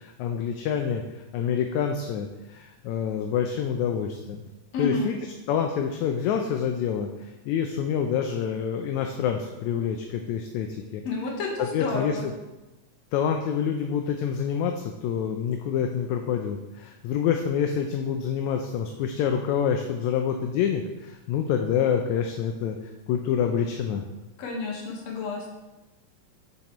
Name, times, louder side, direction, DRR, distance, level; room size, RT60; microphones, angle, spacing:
voice 1, 0.0-4.5 4.8-5.2 5.5-11.0 11.6-12.3 13.1-24.0, left 8 dB, 80° left, 4 dB, 1.9 m, -27 dB
voice 2, 4.7-5.1 11.0-12.2 24.4-25.5, left 3 dB, 65° left, 0 dB, 2.4 m, -30 dB
7.9 x 7.1 x 3.0 m, 1.0 s
omnidirectional pair, 3.4 m